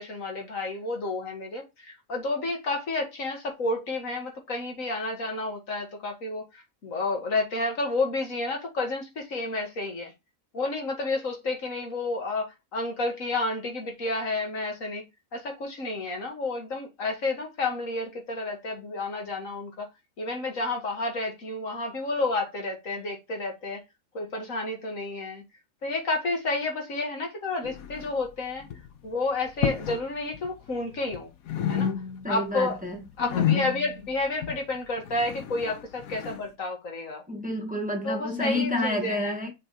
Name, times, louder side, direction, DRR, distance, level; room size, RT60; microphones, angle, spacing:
voice 1, 0.0-6.5 6.8-10.1 10.5-15.0 15.3-19.9 20.2-23.8 24.1-25.4 25.8-28.7 29.0-31.3 31.7-31.9 32.3-32.8 33.2-37.2 38.0-39.3, left 2 dB, 70° left, 2.1 m, -30 dB
sound 1, 27.6-28.3 28.6-29.0 29.5-30.1 30.3-31.2 31.5-32.4 32.7-36.5, left 9 dB, 85° left, 1.2 m, -30 dB
voice 2, 32.2-33.0 37.3-39.5, left 1 dB, 5° right, 1.4 m, -29 dB
6.6 x 3.5 x 4.1 m
omnidirectional pair, 1.4 m